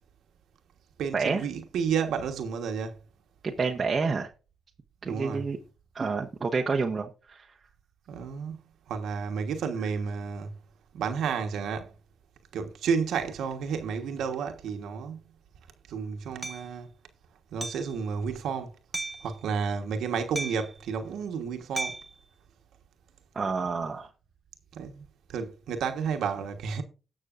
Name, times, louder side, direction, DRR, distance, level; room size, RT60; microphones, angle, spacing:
voice 1, 1.0-3.0 5.0-5.4 8.1-8.6 8.9-10.5 10.9-11.9 12.5-15.2 15.9-16.9 17.5-18.7 19.2-22.0 24.7-25.0 25.3-26.8, right 6 dB, 75° right, 1.3 m, -31 dB
voice 2, 3.4-4.3 5.0-5.6 5.9-7.5 23.3-24.1, right 4 dB, 40° right, 1.1 m, -28 dB
Hammer, 16.4-16.6 17.6-17.9 18.9-19.3 20.4-20.8 21.8-22.1, right 2 dB, 20° right, 1.2 m, -34 dB
18.5 x 6.2 x 2.5 m
supercardioid pair, 60°, 0 cm